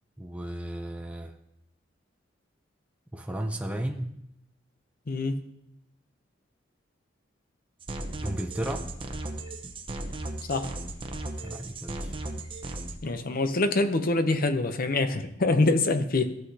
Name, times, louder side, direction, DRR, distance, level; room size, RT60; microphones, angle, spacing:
voice 1, 0.2-1.3 3.1-4.2 8.2-8.9 11.4-12.1, right 1 dB, 5° right, 4 dB, 0.6 m, -34 dB
voice 2, 5.1-5.4 10.5-10.7 13.0-16.4, left 2 dB, 50° left, 9 dB, 0.7 m, -25 dB
sound 1, 7.8-13.0, right 2 dB, 25° right, 0.9 m, -36 dB
14.5 x 7.9 x 2.8 m, 0.81 s
head